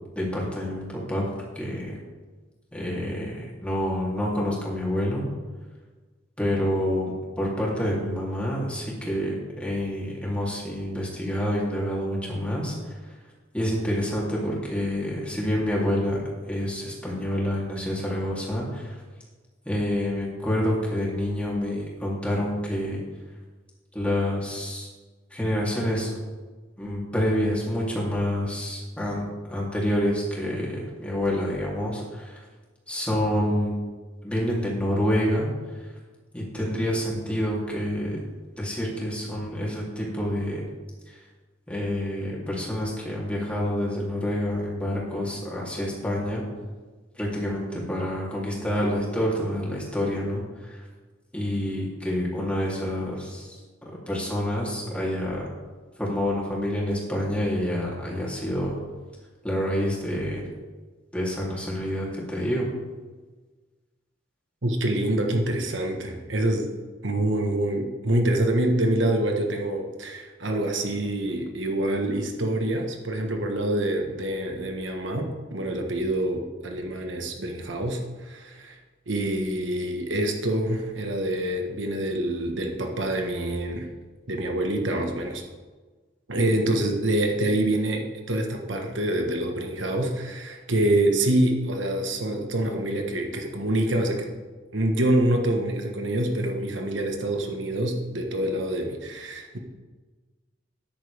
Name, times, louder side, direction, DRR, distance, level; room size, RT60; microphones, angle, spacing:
voice 1, 0.1-1.3 1.5-2.0 2.7-5.2 6.4-12.7 13.5-16.2 16.5-19.0 19.6-23.0 23.9-24.9 25.3-26.1 26.8-32.4 32.9-33.8 34.2-35.5 36.3-38.2 38.6-40.6 41.1-41.2 41.7-46.4 47.1-50.8 51.3-53.6 54.1-55.5 56.0-58.8 59.4-60.4 61.1-62.7, equal, 5° left, -5 dB, 3.2 m, -27 dB
voice 2, 64.6-66.7 67.0-78.8 79.1-83.9 84.3-85.4 86.3-94.3 94.7-99.6, right 1 dB, 75° right, 3 dB, 1.4 m, -26 dB
13.5 x 10.5 x 3.6 m, 1.3 s
head